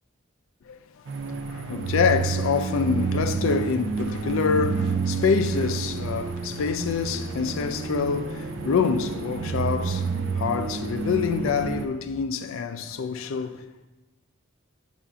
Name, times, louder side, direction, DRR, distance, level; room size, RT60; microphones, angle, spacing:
sound 1, 1.1-11.8, right 5 dB, 65° right, 0.5 m, -29 dB
voice 1, 1.4-10.1 10.3-13.6, left 6 dB, 80° left, 0.4 m, -26 dB
6.8 x 2.5 x 5.5 m
head